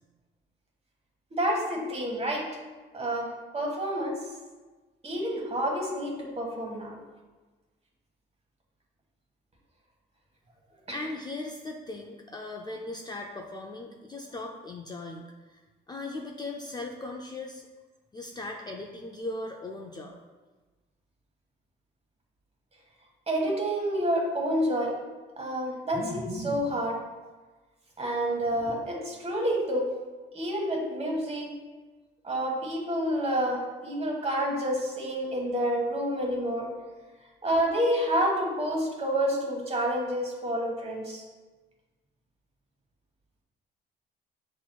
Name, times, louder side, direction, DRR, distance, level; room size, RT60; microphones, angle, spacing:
voice 1, 1.3-2.5 2.9-4.2 5.0-7.0 23.3-24.9 25.4-27.0 28.0-29.9 30.3-31.5 32.2-36.7 37.4-41.2, equal, 30° right, -1 dB, 1.1 m, -28 dB
voice 2, 10.7-15.6 15.9-17.7 18.1-20.2, left 2 dB, 20° left, 0 dB, 0.3 m, -38 dB
6.7 x 3.0 x 2.2 m, 1.3 s
cardioid pair, 90°, 20 cm